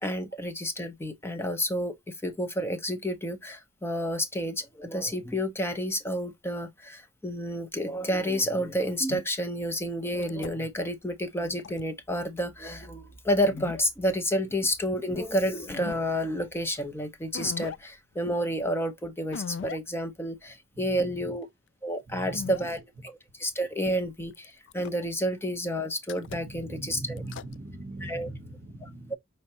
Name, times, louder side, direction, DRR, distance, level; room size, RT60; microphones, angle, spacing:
voice 1, 0.0-2.0 2.2-21.5 21.8-27.2 28.0-28.3 28.8-29.1, equal, 10° left, 0.7 m, -30 dB
sound 1, 9.1-9.2 10.2-10.5 11.4-11.8 13.4-13.8 15.2-15.3 15.6-16.0 16.5-16.6 17.3-17.8 19.3-19.8 20.3-20.4 22.3-22.6 24.3-25.1 25.9-26.7 27.2-27.6, left 6 dB, 60° left, 0.3 m, -38 dB
voice 2, 20.7-21.4 22.1-22.6 23.0-23.1 26.2-29.1, right 2 dB, 50° right, 0.9 m, -41 dB
5.7 x 3.2 x 2.8 m
head